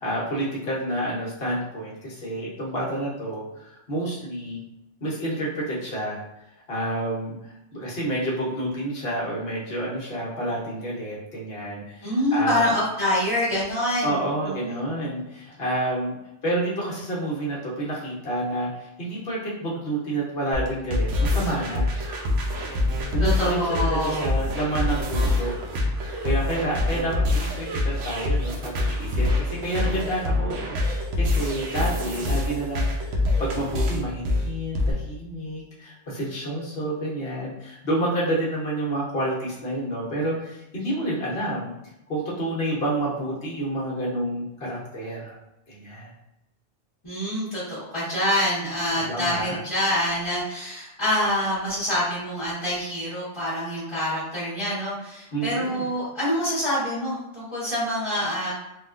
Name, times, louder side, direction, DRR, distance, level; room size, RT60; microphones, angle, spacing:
voice 1, 0.0-4.6 5.0-6.2 6.7-12.7 14.0-16.2 16.4-21.9 23.1-25.5 26.2-41.7 42.1-45.4 45.7-46.1 48.9-49.6 55.3-55.8, right 1 dB, 55° left, -5 dB, 1.2 m, -29 dB
voice 2, 12.0-14.1 14.4-14.9 23.2-24.2 47.0-58.5, left 1 dB, 25° left, -12 dB, 1.1 m, -26 dB
sound 1, 20.5-34.9, left 2 dB, 80° right, 0.9 m, -25 dB
3.5 x 2.3 x 2.4 m, 0.91 s
omnidirectional pair, 1.2 m